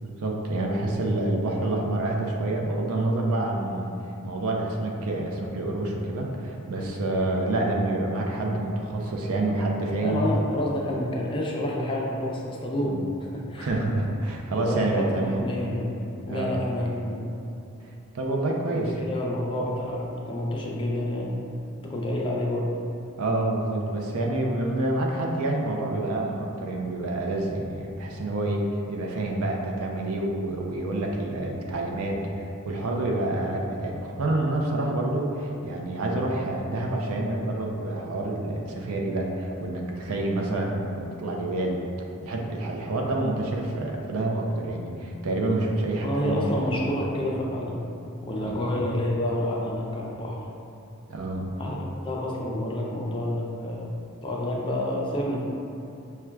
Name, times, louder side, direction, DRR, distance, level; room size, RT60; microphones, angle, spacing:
voice 1, 0.0-3.9 4.2-10.2 12.9-13.0 13.6-15.5 16.3-16.6 18.1-19.0 23.2-41.8 42.2-46.5 46.8-47.1 48.4-48.6 51.1-51.5, right 2 dB, 85° right, 0 dB, 0.5 m, -28 dB
voice 2, 10.0-13.7 14.7-16.0 16.3-17.3 18.7-18.8 19.1-21.4 21.8-22.7 46.0-47.8 48.2-50.4 51.6-53.9 54.2-55.4, left 1 dB, 25° left, -3 dB, 0.4 m, -29 dB
5.9 x 2.2 x 2.2 m, 2.7 s
head